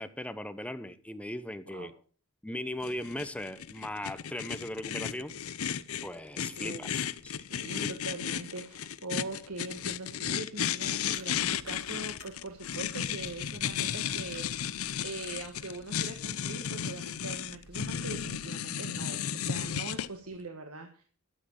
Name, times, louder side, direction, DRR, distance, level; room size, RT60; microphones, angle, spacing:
voice 1, 0.0-1.9 2.4-5.3 6.0-7.3 7.8-7.9, left 1 dB, 5° left, 0.8 m, -38 dB
sound 1, 2.8-20.1, left 8 dB, 75° left, 0.6 m, -34 dB
voice 2, 6.4-6.9 7.3-21.0, right 2 dB, 90° right, 1.6 m, -42 dB
sound 2, 11.1-18.5, right 1 dB, 70° right, 2.7 m, -57 dB
12.5 x 7.8 x 6.5 m
head